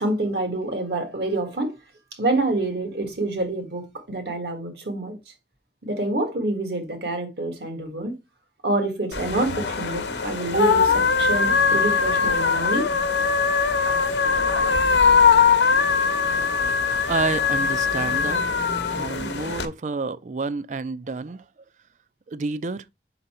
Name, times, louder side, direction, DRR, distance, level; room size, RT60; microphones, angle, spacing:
voice 1, 0.0-1.7 2.1-5.3 5.8-8.2 8.6-12.9, right 2 dB, 70° right, 1.6 m, -27 dB
sound 1, 9.1-19.7, left 5 dB, 90° left, 0.9 m, -21 dB
voice 2, 17.1-18.4 18.9-21.4 22.3-22.8, right 4 dB, 45° right, 0.4 m, -29 dB
5.6 x 4.0 x 4.3 m
head